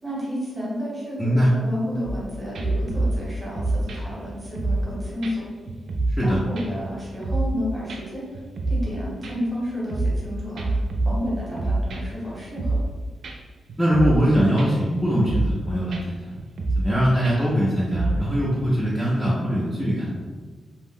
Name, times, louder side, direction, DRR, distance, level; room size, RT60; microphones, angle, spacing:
voice 1, 0.0-5.5 6.2-8.2 8.7-12.8, equal, 10° right, -6 dB, 0.9 m, -31 dB
voice 2, 1.2-1.5 6.2-6.4 13.8-16.3 16.8-20.1, equal, 5° left, -9 dB, 0.4 m, -22 dB
sound 1, 2.0-2.2 2.5-4.9 5.2-5.3 5.7-6.3 6.6-7.6 7.9-8.0 8.3-8.9 9.2-10.3 10.6-12.2 12.6-12.9 13.2-13.4 13.7-14.3 14.6-14.9 15.2-15.6 15.9-16.0 16.4-16.9 17.2-18.3, right 2 dB, 60° right, 0.3 m, -26 dB
2.6 x 2.0 x 3.5 m, 1.4 s
wide cardioid pair, 175°, 0 cm